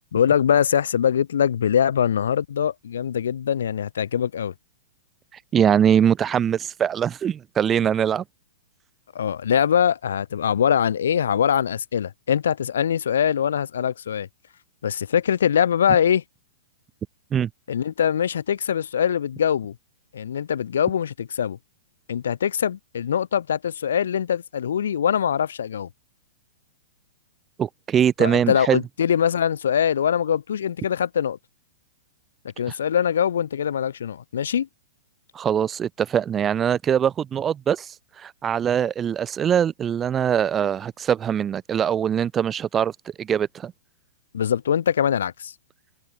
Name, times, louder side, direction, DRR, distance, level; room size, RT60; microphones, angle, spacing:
voice 1, 0.1-4.5 9.1-14.3 14.8-16.2 17.7-19.7 20.1-21.6 22.1-25.9 28.2-31.4 32.6-34.7 44.3-45.5, left 8 dB, 75° left, 4.1 m, -23 dB
voice 2, 5.5-8.2 17.3-17.5 27.6-28.8 35.3-42.9 43.2-43.7, right 8 dB, 20° right, 0.7 m, -22 dB
open air
hypercardioid pair, 120°, 0 cm